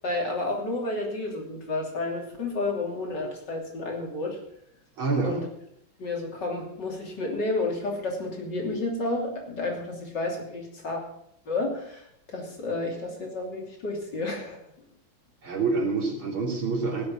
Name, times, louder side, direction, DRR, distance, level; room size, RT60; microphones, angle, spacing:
voice 1, 0.0-4.4 5.2-5.5 6.0-11.0 11.5-14.6, left 2 dB, 50° left, 0 dB, 3.6 m, -31 dB
voice 2, 5.0-5.4 15.4-17.1, right 4 dB, 70° right, 0 dB, 3.9 m, -27 dB
17.0 x 7.7 x 7.2 m, 0.73 s
omnidirectional pair, 2.4 m